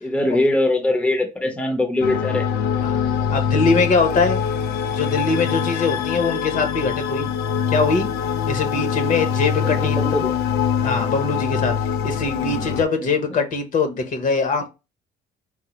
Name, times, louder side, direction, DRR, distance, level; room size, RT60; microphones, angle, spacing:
voice 1, 0.0-2.5 9.6-10.3 12.3-12.7 13.0-13.1, left 1 dB, 5° left, 0.7 m, -22 dB
sound 1, 2.0-12.8, left 7 dB, 75° left, 0.5 m, -23 dB
voice 2, 3.3-4.4 4.8-7.3 7.7-8.1 8.5-10.2 10.8-14.7, left 4 dB, 55° left, 1.0 m, -22 dB
4.8 x 2.1 x 3.0 m
cardioid pair, 110°, 17 cm